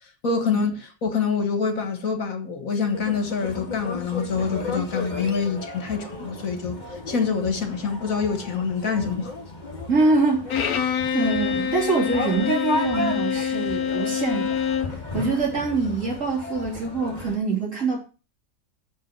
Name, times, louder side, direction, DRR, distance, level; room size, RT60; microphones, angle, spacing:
voice 1, 0.2-9.3, left 5 dB, 65° left, 1.9 m, -26 dB
sound 1, 2.9-17.4, left 2 dB, 30° left, 1.9 m, -34 dB
voice 2, 9.9-14.6 15.1-18.0, right 3 dB, 55° right, 4.2 m, -25 dB
Bowed string instrument, 10.5-15.0, left 7 dB, 80° left, 1.4 m, -26 dB
7.8 x 6.3 x 7.9 m
omnidirectional pair, 1.6 m